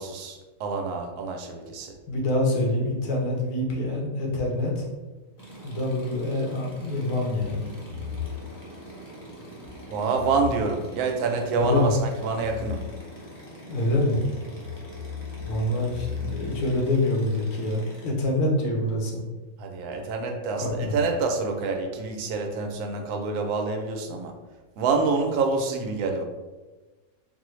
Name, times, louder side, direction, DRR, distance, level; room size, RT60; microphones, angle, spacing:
voice 1, 0.0-1.9 9.9-12.8 19.6-24.3 24.8-26.2, right 4 dB, 85° right, 3 dB, 1.1 m, -27 dB
voice 2, 2.1-4.9 5.6-7.7 11.6-11.9 13.7-14.3 15.4-19.2 20.6-21.0, left 1 dB, 90° left, -1 dB, 1.3 m, -26 dB
sound 1, 5.4-18.1, right 2 dB, 20° left, 0.5 m, -45 dB
sound 2, 7.4-16.9, left 7 dB, 70° left, 0.9 m, -39 dB
4.0 x 2.0 x 3.0 m, 1.2 s
omnidirectional pair, 1.6 m